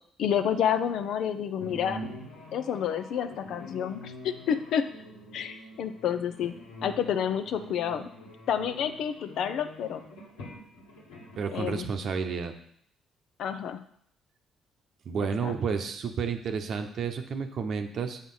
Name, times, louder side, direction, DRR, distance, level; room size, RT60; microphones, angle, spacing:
voice 1, 0.2-2.0 2.5-4.9 5.3-6.5 6.8-8.1 8.5-10.0 11.5-11.9 13.4-13.8 15.4-15.5, left 8 dB, 70° left, 10 dB, 0.6 m, -29 dB
sound 1, 1.6-11.7, left 1 dB, 85° left, 1.9 m, -45 dB
voice 2, 11.4-12.5 15.0-18.2, right 6 dB, 60° right, 6 dB, 0.8 m, -31 dB
7.3 x 4.6 x 5.6 m, 0.67 s
hypercardioid pair, 55°, 0 cm